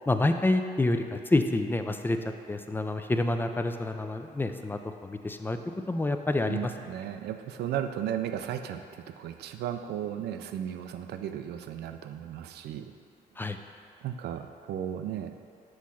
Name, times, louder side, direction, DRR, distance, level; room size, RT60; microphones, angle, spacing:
voice 1, 0.1-2.2 2.5-5.6 5.9-6.7 13.4-13.6, left 2 dB, 10° left, 7 dB, 0.3 m, -28 dB
voice 2, 6.5-12.9 14.0-15.3, right 10 dB, 85° right, 8 dB, 0.4 m, -35 dB
6.3 x 3.1 x 5.6 m, 2.3 s
cardioid pair, 95°, 17 cm